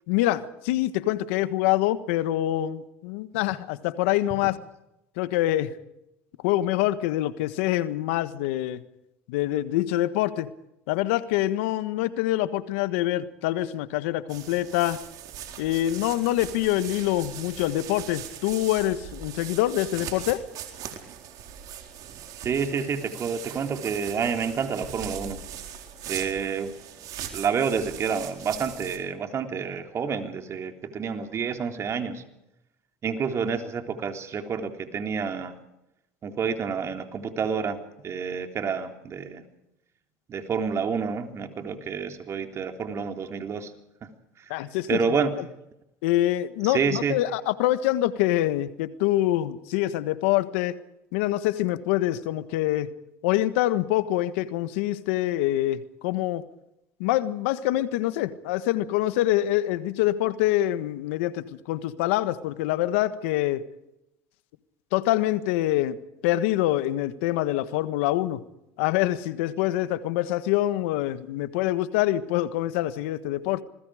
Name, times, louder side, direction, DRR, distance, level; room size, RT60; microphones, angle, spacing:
voice 1, 0.1-4.6 5.2-5.7 6.4-8.8 9.3-10.5 10.9-15.0 15.6-20.4 44.5-45.0 46.0-50.8 51.1-52.9 53.2-56.4 57.0-63.6 64.9-68.4 68.8-73.6, left 14 dB, 85° left, 13 dB, 1.4 m, -25 dB
sound 1, 14.3-29.0, right 9 dB, 65° right, 4.2 m, -40 dB
voice 2, 22.4-25.4 26.1-26.7 27.3-32.2 33.0-35.5 36.2-39.4 40.3-43.7 44.4-44.5 44.9-45.3 46.6-47.2, right 6 dB, 45° right, 5 dB, 3.6 m, -29 dB
27.5 x 21.5 x 5.0 m, 0.87 s
supercardioid pair, 85°, 7 cm